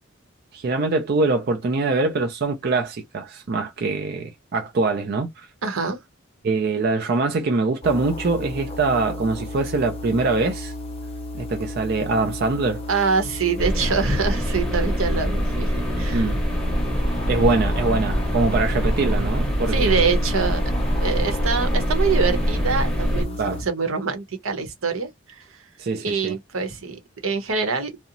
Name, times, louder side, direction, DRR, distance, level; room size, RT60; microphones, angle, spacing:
voice 1, 0.5-5.5 6.4-10.7 11.4-12.8 16.1-16.4 17.3-20.2 23.4-23.6 25.8-26.4, right 3 dB, 50° right, 0.4 m, -23 dB
voice 2, 5.6-6.0 12.9-16.3 19.7-20.6 21.0-25.1 25.4-25.5 26.0-27.9, right 5 dB, 85° right, 0.9 m, -25 dB
sound 1, 7.8-23.6, left 1 dB, 30° left, 0.5 m, -33 dB
sound 2, 13.6-23.2, equal, ahead, 0.8 m, -23 dB
2.8 x 2.0 x 2.5 m
head